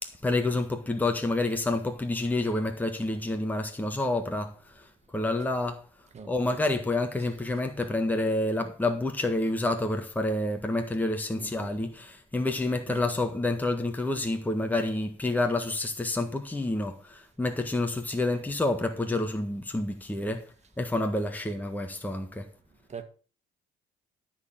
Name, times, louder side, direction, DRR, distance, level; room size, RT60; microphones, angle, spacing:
voice 1, 0.0-5.8 6.2-20.4 20.8-22.5, left 2 dB, 10° left, 1.6 m, -28 dB
voice 2, 6.1-6.6 11.4-11.7 12.9-13.0 22.9-23.0, right 6 dB, 40° right, 1.9 m, -43 dB
12.5 x 4.5 x 7.4 m
supercardioid pair, 80°, 18 cm